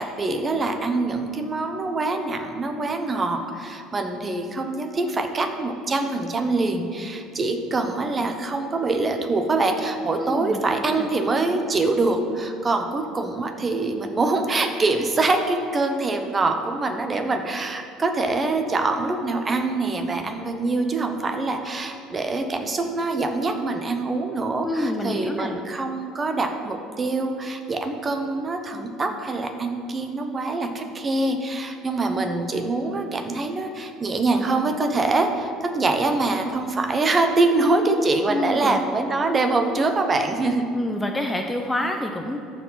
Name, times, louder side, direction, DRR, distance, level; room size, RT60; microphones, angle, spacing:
voice 1, 0.0-40.7, right 3 dB, 25° right, 6 dB, 0.8 m, -24 dB
voice 2, 10.2-11.1 24.6-25.5 38.3-38.8 40.7-42.4, left 1 dB, 10° left, 3 dB, 0.5 m, -27 dB
13.5 x 4.8 x 4.0 m, 2.4 s
cardioid pair, 130°, 0 cm